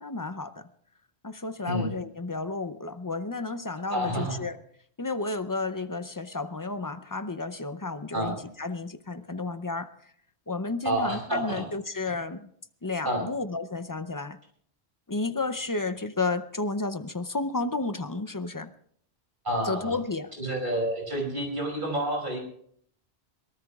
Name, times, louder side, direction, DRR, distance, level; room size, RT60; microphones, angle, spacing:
voice 1, 0.0-0.7 1.2-4.6 5.0-9.9 10.5-12.5 12.8-14.4 15.1-18.7 19.6-20.3, left 3 dB, 25° left, 11 dB, 0.5 m, -32 dB
voice 2, 3.9-4.4 8.1-8.4 10.8-11.6 13.0-13.3 19.4-20.0 20.3-22.4, right 1 dB, 55° right, 1 dB, 5.8 m, -29 dB
23.5 x 18.5 x 2.4 m, 0.63 s
omnidirectional pair, 1.1 m